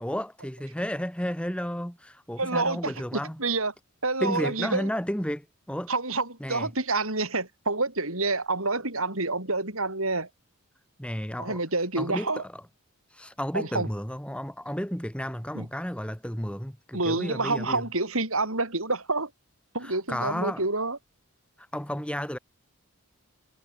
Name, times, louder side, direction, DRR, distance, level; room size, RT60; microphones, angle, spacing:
voice 1, 0.0-3.4 4.2-5.9 6.4-6.7 11.0-11.6 12.0-12.6 13.1-17.8 19.8-20.6 21.7-22.4, equal, 5° left, 3.9 m, -32 dB
voice 2, 2.4-3.7 4.0-4.9 5.9-10.3 11.4-12.4 13.5-13.9 15.5-15.7 16.9-19.3 19.7-21.0, right 3 dB, 70° right, 7.2 m, -28 dB
head